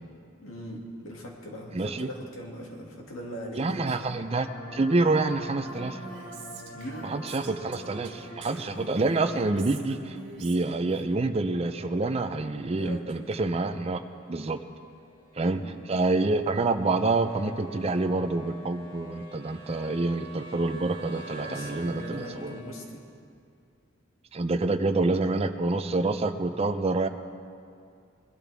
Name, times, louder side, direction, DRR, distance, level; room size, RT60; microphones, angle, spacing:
voice 1, 0.4-3.9 6.7-7.1 12.8-13.0 15.4-15.8 21.0-23.0, equal, 90° left, -1 dB, 2.3 m, -40 dB
voice 2, 1.7-2.1 3.6-6.0 7.0-14.0 14.3-14.6 15.4-15.6 15.9-22.6 24.3-27.1, right 3 dB, 30° right, 9 dB, 0.5 m, -27 dB
sound 1, 3.0-22.6, right 1 dB, 25° left, 2.5 m, -50 dB
sound 2, 4.4-9.8, left 1 dB, 50° left, 1.7 m, -44 dB
Female speech woman speaking, 5.7-11.0, right 3 dB, 60° right, 1.8 m, -44 dB
21.0 x 12.0 x 3.5 m, 2.4 s
head